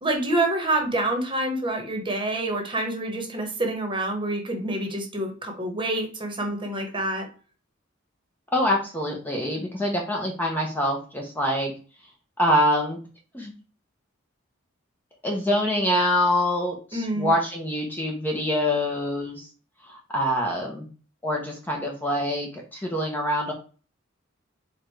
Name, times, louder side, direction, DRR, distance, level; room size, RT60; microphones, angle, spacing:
voice 1, 0.0-7.3 16.9-17.3, right 1 dB, 25° right, 3 dB, 1.1 m, -27 dB
voice 2, 8.5-11.7 12.4-13.0 13.3-13.5 15.2-19.5 19.9-20.9 21.2-23.5, equal, 10° left, 0 dB, 0.7 m, -25 dB
4.7 x 2.4 x 4.5 m, 0.37 s
head